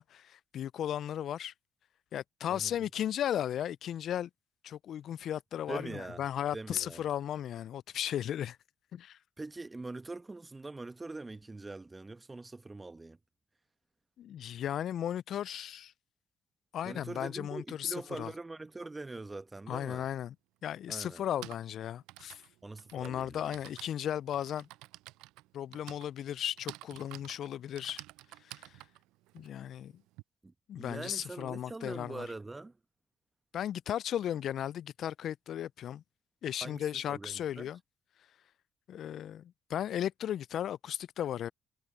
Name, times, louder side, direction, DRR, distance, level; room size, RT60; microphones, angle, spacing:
voice 1, 0.0-1.5 2.1-4.3 4.6-8.6 8.9-9.2 14.2-15.9 16.7-18.3 19.7-20.3 20.6-22.4 22.9-24.7 25.5-28.0 28.4-28.7 29.3-29.9 30.7-32.3 33.5-36.0 36.4-37.8 38.9-41.5, left 10 dB, 65° left, 0.3 m, -36 dB
voice 2, 5.7-6.2 6.5-7.0 9.4-13.2 16.8-20.1 20.9-21.2 22.6-23.5 30.4-32.8 36.6-37.7, right 2 dB, 25° right, 1.1 m, -43 dB
Typing, 20.0-20.1 21.1-30.2, right 19 dB, 80° right, 0.4 m, -50 dB
hypercardioid pair, 50°, 0 cm